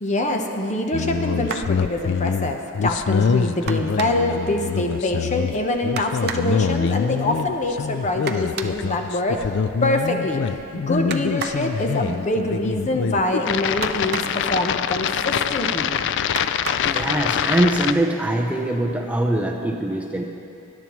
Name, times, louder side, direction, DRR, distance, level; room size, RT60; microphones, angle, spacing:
voice 1, 0.0-9.5 9.8-10.4 10.9-15.9, left 1 dB, 35° left, 3 dB, 0.9 m, -24 dB
sound 1, 0.9-17.9, left 6 dB, 60° left, 0.3 m, -25 dB
sound 2, 1.4-1.8 3.7-4.4 6.0-6.5 8.3-8.8 11.1-11.7 13.8-14.5 16.3-16.9 18.0-18.1 18.6-18.8, right 6 dB, 50° right, 0.6 m, -32 dB
voice 2, 16.8-20.2, right 1 dB, 5° right, 1 dB, 0.6 m, -22 dB
20.5 x 10.5 x 3.1 m, 2.7 s
head